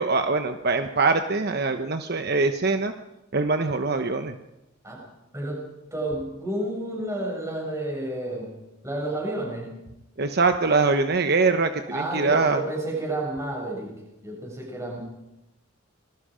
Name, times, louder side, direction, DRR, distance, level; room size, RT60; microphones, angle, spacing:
voice 1, 0.0-2.9 3.3-4.3 10.2-12.6, right 3 dB, 55° right, 7 dB, 1.0 m, -23 dB
voice 2, 5.3-5.6 5.9-8.5 8.8-9.7 11.9-13.9 14.2-15.0, right 1 dB, 15° right, -1 dB, 6.9 m, -30 dB
27.0 x 21.0 x 5.1 m, 0.90 s
head